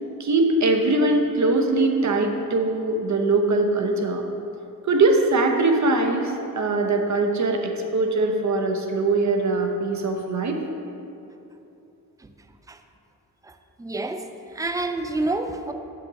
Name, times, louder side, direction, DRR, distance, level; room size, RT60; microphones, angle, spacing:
voice 1, 0.2-4.2 4.9-10.6, right 2 dB, 50° right, 3 dB, 0.8 m, -22 dB
voice 2, 13.4-14.3 14.5-15.7, right 2 dB, 10° right, 7 dB, 0.4 m, -28 dB
6.8 x 5.7 x 4.0 m, 2.9 s
cardioid pair, 80°, 36 cm